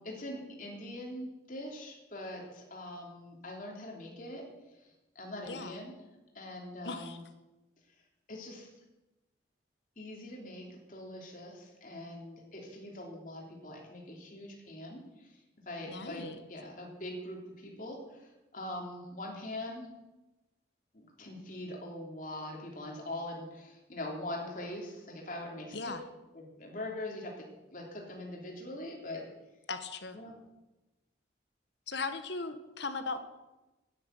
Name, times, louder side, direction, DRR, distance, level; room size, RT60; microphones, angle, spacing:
voice 1, 0.0-5.9 6.3-7.2 8.3-8.7 10.0-15.4 15.6-19.9 20.9-25.9 26.3-29.3 30.1-30.3, left 1 dB, 45° left, -1 dB, 3.2 m, -43 dB
voice 2, 5.5-5.8 6.8-7.2 15.9-16.4 25.7-26.0 29.7-30.2 31.9-33.2, left 3 dB, 65° left, 9 dB, 1.3 m, -38 dB
10.5 x 9.8 x 9.3 m, 1.0 s
head